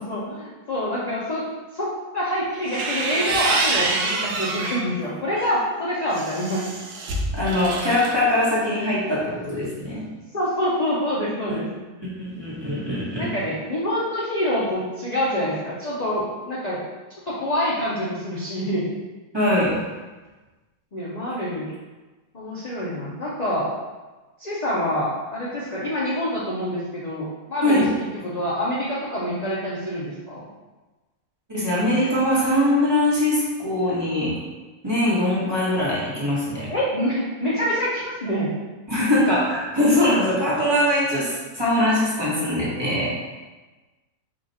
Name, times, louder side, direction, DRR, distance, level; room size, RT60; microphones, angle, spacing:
voice 1, 0.0-1.4 1.7-6.7 10.3-11.7 13.2-16.8 17.3-18.9 20.9-21.7 22.3-23.7 24.4-27.8 28.2-30.4 36.7-38.5, equal, 45° left, -7 dB, 0.5 m, -26 dB
sound 1, 2.5-4.9 5.3-8.2, right 3 dB, 80° right, 1.2 m, -27 dB
voice 2, 7.3-10.1 11.5-11.6 12.0-13.3 19.3-19.8 27.6-27.9 31.5-34.4 34.8-36.7 38.9-43.2, left 1 dB, 20° right, -9 dB, 1.1 m, -22 dB
5.0 x 2.4 x 4.1 m, 1.2 s
omnidirectional pair, 1.7 m